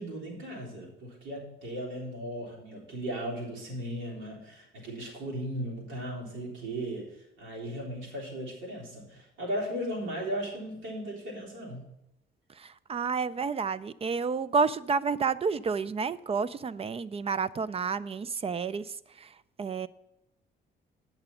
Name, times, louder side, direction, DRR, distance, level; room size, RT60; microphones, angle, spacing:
voice 1, 0.0-11.8, equal, 80° right, -2 dB, 3.6 m, -37 dB
voice 2, 12.6-19.9, right 5 dB, 30° right, 18 dB, 0.4 m, -30 dB
8.7 x 6.0 x 6.9 m, 0.88 s
cardioid pair, 90°, 20 cm